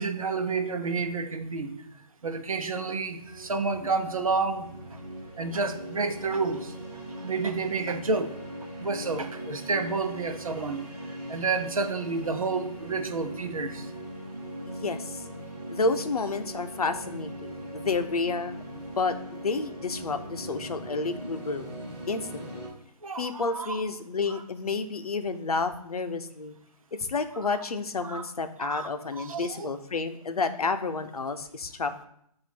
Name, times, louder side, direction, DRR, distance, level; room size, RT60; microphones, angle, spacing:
voice 1, 0.0-1.8 2.2-5.0 5.4-6.7 7.2-8.3 8.8-10.9 11.3-13.9 23.0-23.8 28.0-28.2 28.6-28.9 29.2-29.7, right 4 dB, 55° right, 7 dB, 0.9 m, -30 dB
sound 1, 3.2-22.7, right 1 dB, 5° left, 1.7 m, -40 dB
voice 2, 14.7-15.2 15.7-21.7 22.1-22.7 23.2-26.5 26.9-32.1, left 4 dB, 65° left, 9 dB, 0.7 m, -30 dB
7.6 x 2.6 x 5.3 m, 0.71 s
hypercardioid pair, 180°, 21 cm